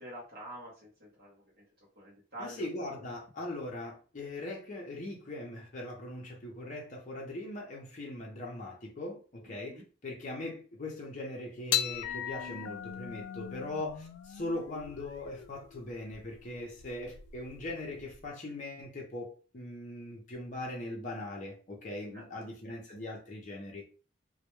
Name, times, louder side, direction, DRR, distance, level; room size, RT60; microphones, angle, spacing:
voice 1, 0.0-1.6 2.0-2.7 3.0-3.1 9.5-9.8 22.1-22.3, equal, 50° right, 0.7 m, -47 dB
voice 2, 2.4-23.8, left 1 dB, 35° left, 0.5 m, -40 dB
sound 1, 11.7-18.3, left 10 dB, 90° left, 0.3 m, -38 dB
2.1 x 2.1 x 2.9 m
head